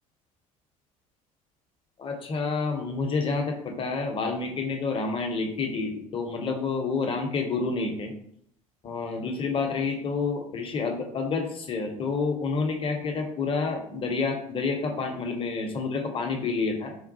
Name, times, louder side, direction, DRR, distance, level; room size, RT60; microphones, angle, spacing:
voice 1, 2.0-8.1 8.8-17.0, left 4 dB, 30° left, 3 dB, 0.7 m, -29 dB
3.6 x 2.3 x 2.7 m, 0.69 s
figure-of-eight pair, 60°, 18 cm